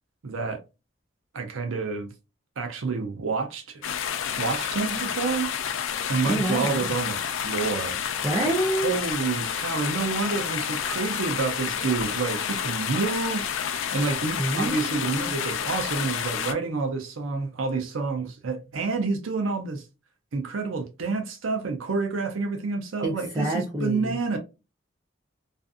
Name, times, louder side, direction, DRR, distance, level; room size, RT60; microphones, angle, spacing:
voice 1, 0.2-0.6 1.3-2.1 2.6-3.9 4.4-5.5 6.1-8.0 8.4-8.5 8.8-19.8 20.3-24.4, right 4 dB, 90° right, 0.6 m, -29 dB
sound 1, 3.8-16.5, left 8 dB, 85° left, 0.4 m, -30 dB
voice 2, 6.3-6.9 8.2-9.1 14.4-15.4 23.0-24.2, right 1 dB, 15° right, 0.5 m, -28 dB
2.5 x 2.5 x 2.4 m
head